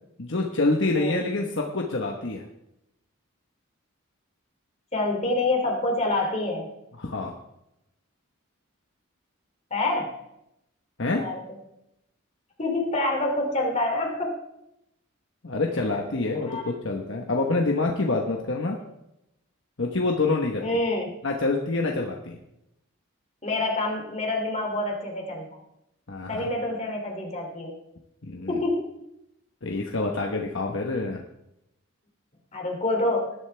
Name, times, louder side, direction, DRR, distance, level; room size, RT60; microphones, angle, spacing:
voice 1, 0.2-2.4 7.0-7.3 11.0-11.2 15.4-18.8 19.8-20.6 21.2-22.4 26.1-26.5 28.2-28.6 29.6-31.2, left 3 dB, 55° left, 1 dB, 1.2 m, -26 dB
voice 2, 4.9-6.7 9.7-10.1 11.2-11.4 12.6-14.4 16.5-16.6 20.6-21.1 23.4-25.5 26.3-27.7 28.5-28.9 32.5-33.3, left 2 dB, 30° left, 1 dB, 2.8 m, -27 dB
19.5 x 11.0 x 3.4 m, 0.86 s
head